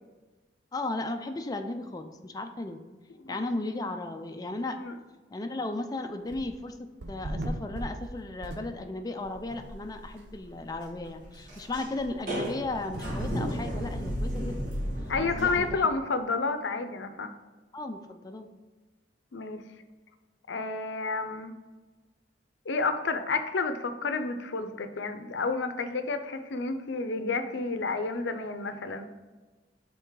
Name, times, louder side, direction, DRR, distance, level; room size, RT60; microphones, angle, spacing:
voice 1, 0.7-2.8 3.3-4.8 5.3-6.8 7.1-14.7 15.2-15.8 17.7-18.5, left 2 dB, 20° left, 6 dB, 0.4 m, -35 dB
sound 1, 6.3-6.7 7.0-9.1 9.5-9.6 10.2-10.3 10.5-10.6 11.0-11.1 12.9-13.1, right 1 dB, 65° right, 0.7 m, -37 dB
sound 2, 9.2-15.7, equal, 50° right, 1.5 m, -34 dB
voice 2, 15.1-17.3 19.3-19.6 20.5-21.5 22.7-29.1, left 4 dB, 80° left, 9 dB, 0.6 m, -30 dB
5.7 x 3.8 x 4.7 m, 1.3 s
head